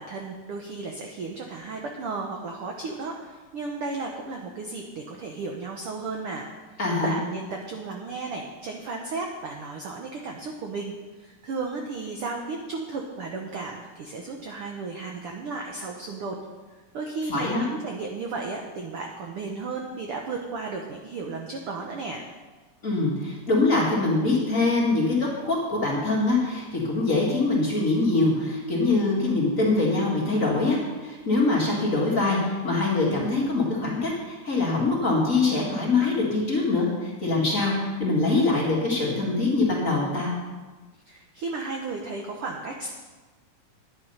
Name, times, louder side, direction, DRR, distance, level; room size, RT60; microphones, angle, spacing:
voice 1, 0.0-10.9 11.2-16.3 16.9-22.2 41.1-42.9, right 3 dB, 65° right, 2 dB, 1.4 m, -34 dB
voice 2, 6.8-7.1 17.3-17.7 22.8-40.3, left 3 dB, 30° left, -4 dB, 2.1 m, -24 dB
10.5 x 9.7 x 5.6 m, 1.3 s
omnidirectional pair, 3.6 m